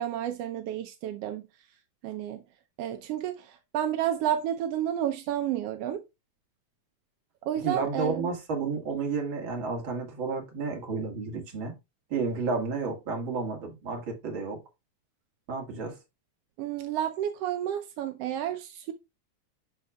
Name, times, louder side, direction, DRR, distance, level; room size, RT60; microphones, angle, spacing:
voice 1, 0.0-1.5 2.0-2.4 2.8-6.0 7.4-8.3 16.6-18.9, right 11 dB, 75° right, 1.5 m, -31 dB
voice 2, 7.6-11.7 12.1-14.6 15.5-16.0, right 4 dB, 45° right, 2.5 m, -31 dB
12.0 x 4.4 x 2.2 m
omnidirectional pair, 3.3 m